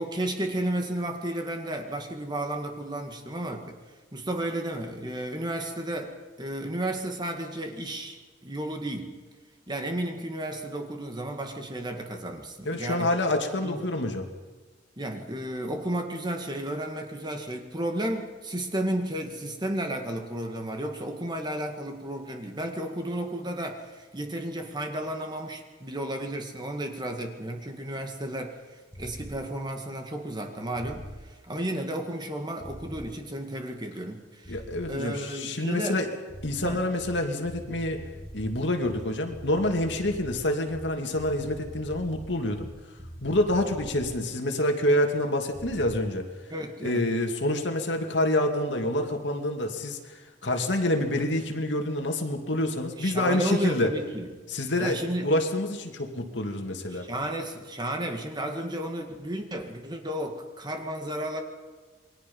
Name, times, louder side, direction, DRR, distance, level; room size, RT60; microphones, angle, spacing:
voice 1, 0.0-3.8 4.1-9.2 9.7-13.1 13.6-13.8 15.0-28.6 29.0-34.6 34.9-36.0 36.6-36.8 46.5-47.1 53.0-54.3 54.8-55.3 56.9-61.4, right 1 dB, 25° right, 4 dB, 2.0 m, -33 dB
voice 2, 12.6-14.3 34.5-36.1 36.4-38.0 38.3-42.7 43.2-46.3 46.8-53.9 54.5-57.1, left 1 dB, 65° left, 3 dB, 2.6 m, -27 dB
sound 1, 28.9-29.4 30.8-31.2 32.6-33.1 34.4-34.9 36.3-44.2 45.5-46.0, equal, 10° left, 4.5 m, -43 dB
28.0 x 22.0 x 5.6 m, 1.4 s
head